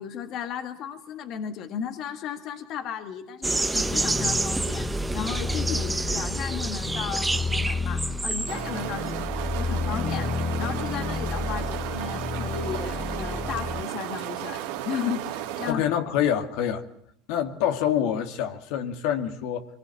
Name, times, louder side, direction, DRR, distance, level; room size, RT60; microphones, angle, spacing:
voice 1, 0.0-15.9, left 8 dB, 50° left, 1.9 m, -35 dB
sound 1, 3.4-8.8, right 2 dB, 10° right, 1.2 m, -28 dB
sound 2, 3.8-13.8, left 4 dB, 20° left, 0.9 m, -31 dB
sound 3, 8.5-15.7, right 12 dB, 80° right, 2.7 m, -34 dB
voice 2, 15.7-16.8 17.3-19.7, left 9 dB, 70° left, 2.2 m, -26 dB
23.5 x 21.0 x 8.4 m
supercardioid pair, 105°, 0 cm